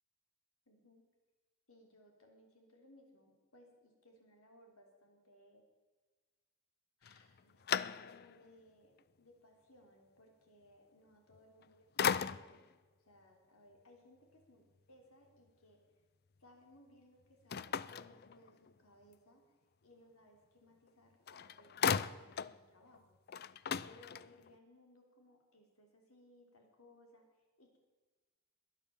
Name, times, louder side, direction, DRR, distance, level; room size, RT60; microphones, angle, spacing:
voice 1, 0.7-1.0 1.7-5.6 7.0-12.7 13.0-15.8 16.4-19.4 19.8-23.2 23.8-27.8, left 1 dB, 75° left, 3 dB, 3.6 m, -64 dB
sound 1, 7.0-8.5 9.0-9.1 11.3-11.6 12.0-12.7 17.5-18.8 20.9-21.0 21.3-22.6 22.9-23.0 23.3-24.6, left 7 dB, 45° left, 0.4 m, -37 dB
22.0 x 9.2 x 7.2 m, 1.3 s
head